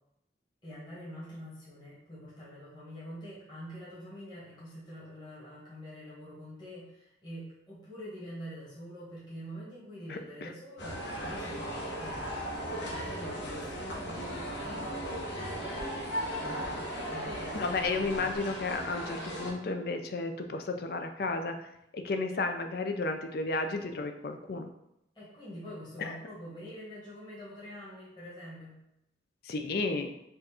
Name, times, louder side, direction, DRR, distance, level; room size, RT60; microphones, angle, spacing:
voice 1, 0.6-14.1 14.5-15.0 17.1-18.3 25.1-28.8, equal, 25° left, -8 dB, 1.4 m, -45 dB
voice 2, 10.1-10.5 17.5-21.7 21.9-24.7 26.0-26.2 29.4-30.1, left 3 dB, 55° left, 6 dB, 0.4 m, -33 dB
sound 1, 10.8-19.5, equal, 80° left, 1.1 m, -37 dB
4.5 x 2.5 x 4.2 m, 0.83 s
head